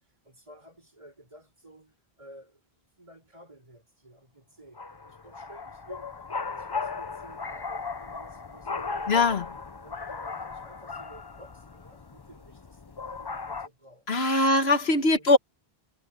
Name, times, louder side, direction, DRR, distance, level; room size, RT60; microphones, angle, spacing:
voice 1, 0.3-2.6 3.0-9.4 9.8-14.1 14.5-14.7 15.1-15.4, right 1 dB, 30° right, 5.3 m, -53 dB
sound 1, 4.7-13.7, left 4 dB, 30° left, 0.6 m, -37 dB
voice 2, 9.1-9.5 14.1-15.4, left 2 dB, 75° left, 1.6 m, -21 dB
omnidirectional pair, 1.1 m